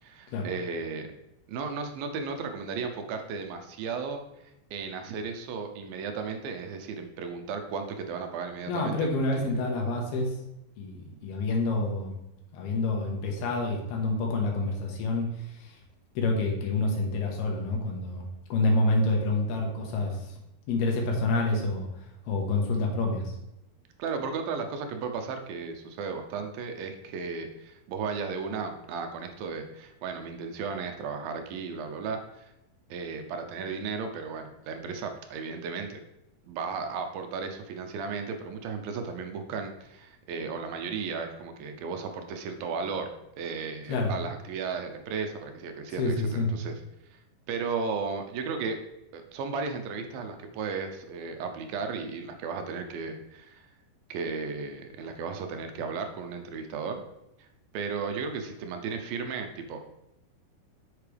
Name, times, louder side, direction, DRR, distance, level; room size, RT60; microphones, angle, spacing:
voice 1, 0.0-1.1 1.5-4.2 4.7-9.0 24.0-32.5 32.9-36.0 36.5-43.1 43.4-46.7 47.1-47.2 47.5-48.8 49.1-53.6 54.1-57.0 57.4-57.5 57.7-59.8, right 5 dB, 75° right, 5 dB, 2.4 m, -35 dB
voice 2, 8.7-10.4 10.8-12.1 12.5-15.8 16.1-18.2 18.5-20.4 20.7-23.3 43.9-44.1 46.0-46.5, left 2 dB, 90° left, 1 dB, 3.4 m, -28 dB
8.2 x 6.8 x 3.4 m, 0.88 s
omnidirectional pair, 4.3 m